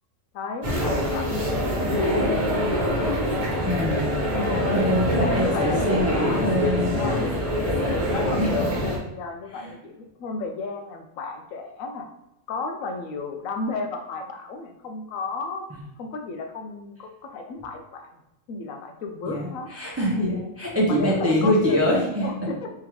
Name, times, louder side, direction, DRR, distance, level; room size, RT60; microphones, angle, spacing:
voice 1, 0.3-1.3 4.3-6.5 7.0-12.1 12.5-15.7 16.0-18.1 18.5-19.7 20.3-20.4 20.9-21.9 22.2-22.7, left 3 dB, 85° left, 5 dB, 1.0 m, -33 dB
sound 1, 0.6-9.0, left 1 dB, 40° right, 1.0 m, -24 dB
voice 2, 3.6-4.2 4.5-7.0 8.4-8.7 9.5-9.7 19.2-22.3, equal, 15° right, -4 dB, 0.5 m, -24 dB
3.7 x 3.5 x 3.0 m, 0.90 s
omnidirectional pair, 1.4 m